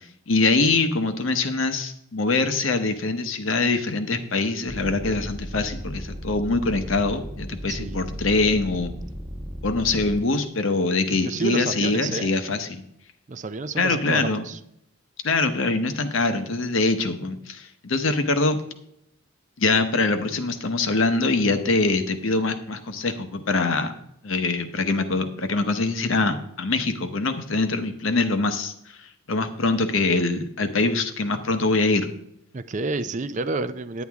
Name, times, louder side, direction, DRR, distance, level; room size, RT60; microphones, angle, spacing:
voice 1, 0.3-8.9 9.6-12.8 13.8-14.4 15.2-18.6 19.6-23.9 24.2-28.7 29.3-32.1, left 3 dB, 70° left, 8 dB, 1.0 m, -23 dB
sound 1, 4.7-10.2, equal, 20° right, 1.2 m, -35 dB
voice 2, 7.7-8.1 11.2-12.3 13.3-14.6 32.5-34.0, right 3 dB, 35° right, 12 dB, 0.4 m, -30 dB
9.7 x 9.3 x 3.6 m, 0.76 s
head